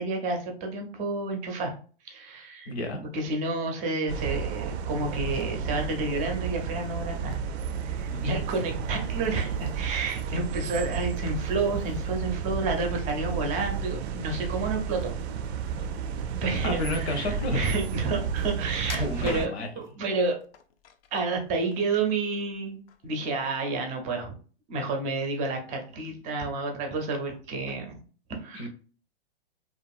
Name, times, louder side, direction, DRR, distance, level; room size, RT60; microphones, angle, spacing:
voice 1, 0.0-1.7 2.0-2.7 3.1-7.4 7.8-15.2 15.5-15.8 16.4-20.4 21.1-24.3 24.7-28.0 28.3-28.7, right 3 dB, 25° right, 3 dB, 0.5 m, -30 dB
voice 2, 2.7-3.0 8.1-8.4 16.6-17.6 18.9-19.7 28.5-28.7, left 1 dB, 85° left, 4 dB, 0.9 m, -31 dB
sound 1, 4.1-19.5, right 6 dB, 80° right, 0.5 m, -32 dB
sound 2, 18.8-19.9 20.5-21.2 21.6-22.5 22.9-23.1 23.6-23.7, left 7 dB, 65° left, 0.5 m, -40 dB
2.8 x 2.4 x 2.3 m, 0.40 s
hypercardioid pair, 140°, 32 cm